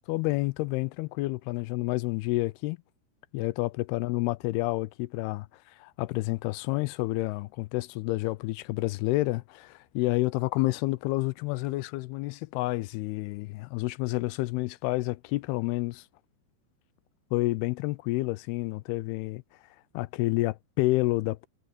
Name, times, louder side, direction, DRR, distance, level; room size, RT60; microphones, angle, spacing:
voice 1, 0.1-2.8 3.3-16.0 17.3-19.4 19.9-21.5, left 20 dB, 80° left, 2.5 m, -29 dB
omnidirectional pair, 4.8 m